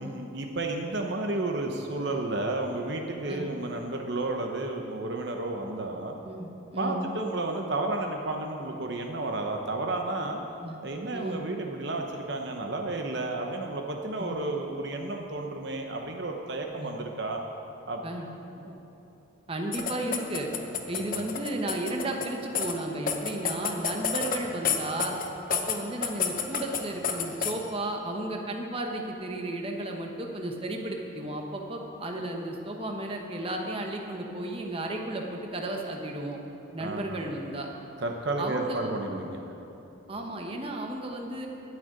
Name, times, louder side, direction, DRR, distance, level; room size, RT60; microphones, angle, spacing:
voice 1, 0.0-6.1 6.8-10.4 10.8-17.4 17.8-18.0 18.6-18.7 21.0-21.1 36.8-37.3 38.0-39.4, right 2 dB, 55° right, 2 dB, 0.9 m, -32 dB
voice 2, 6.2-7.1 10.6-10.8 11.1-11.4 14.2-14.4 16.8-16.9 18.0-18.3 19.5-20.5 20.9-25.1 25.5-36.4 36.7-37.7 38.4-39.0 40.1-41.5, right 1 dB, 25° right, 1 dB, 1.1 m, -34 dB
sound 1, 19.7-22.3 22.6-22.7 23.1-24.4 24.6-25.8 26.0-27.5, left 7 dB, 40° left, 0.9 m, -29 dB
12.5 x 6.5 x 9.5 m, 3.0 s
head